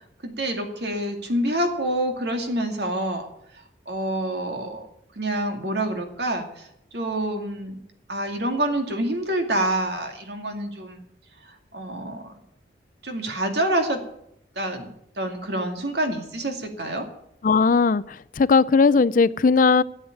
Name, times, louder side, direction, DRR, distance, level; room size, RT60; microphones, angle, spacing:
voice 1, 0.2-3.3 3.9-4.9 5.2-6.7 6.9-7.8 8.1-11.0 11.7-12.3 13.0-14.0 14.6-14.9 15.2-17.1, right 1 dB, 70° right, 4 dB, 2.3 m, -27 dB
voice 2, 17.4-19.8, left 4 dB, 50° left, 18 dB, 0.4 m, -18 dB
13.0 x 8.0 x 8.9 m, 0.75 s
head